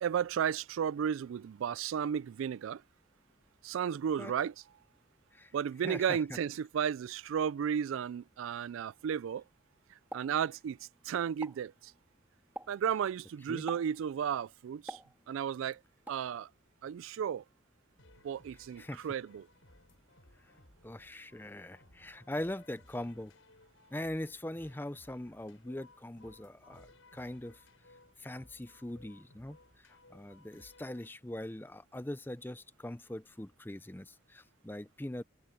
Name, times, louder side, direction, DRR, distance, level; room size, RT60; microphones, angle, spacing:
voice 1, 0.0-2.8 3.6-4.5 5.5-9.4 10.1-10.8 11.0-11.9 12.7-15.0 15.3-15.8 16.1-16.5 16.8-17.4 18.2-19.5, right 8 dB, 80° right, 0.3 m, -33 dB
voice 2, 5.8-6.4 13.5-13.6 18.8-19.1 20.4-20.5 20.8-23.3 23.9-27.6 28.2-35.2, left 1 dB, 10° left, 0.5 m, -42 dB
Explosion, 10.1-11.0 11.3-11.7 12.6-12.9 13.7-14.0 14.9-15.6 16.1-16.3, right 1 dB, 10° right, 3.3 m, -46 dB
sound 1, 18.0-31.1, left 2 dB, 85° left, 7.0 m, -61 dB
head